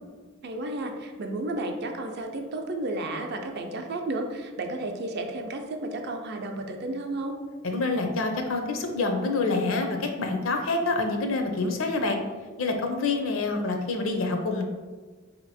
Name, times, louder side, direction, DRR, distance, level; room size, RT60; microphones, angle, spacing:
voice 1, 0.4-7.4, right 2 dB, 55° right, 4 dB, 0.5 m, -32 dB
voice 2, 7.6-12.2 12.6-14.6, left 3 dB, 80° left, 4 dB, 0.6 m, -27 dB
4.1 x 2.9 x 4.1 m, 1.4 s
head